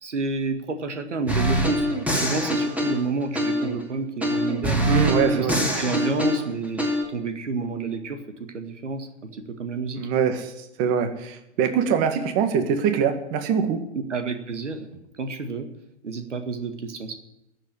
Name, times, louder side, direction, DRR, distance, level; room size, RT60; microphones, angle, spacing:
voice 1, 0.0-4.9 5.3-10.0 13.9-14.9 15.2-15.7 16.0-17.2, right 3 dB, 85° right, 7 dB, 1.9 m, -30 dB
sound 1, 1.3-3.8 4.2-7.0, equal, 5° right, 2.5 m, -24 dB
voice 2, 4.9-5.6 10.0-10.5 10.8-13.8, right 7 dB, 40° right, 7 dB, 1.9 m, -23 dB
15.0 x 7.8 x 9.8 m, 0.87 s
hypercardioid pair, 115°, 35 cm